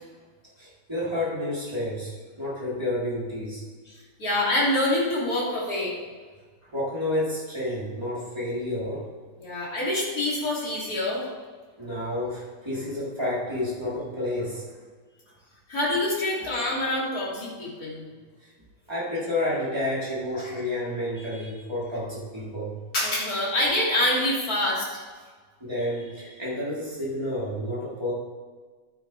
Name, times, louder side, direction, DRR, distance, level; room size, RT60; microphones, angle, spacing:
voice 1, 0.6-3.6 6.6-9.1 11.8-14.8 18.4-18.5 18.9-22.7 25.6-28.1, left 1 dB, 15° right, -8 dB, 3.6 m, -30 dB
voice 2, 4.2-5.9 9.4-11.2 15.7-18.0 20.3-20.5 22.9-24.9, left 1 dB, 60° left, -6 dB, 3.5 m, -26 dB
12.0 x 9.5 x 3.4 m, 1.5 s
omnidirectional pair, 1.8 m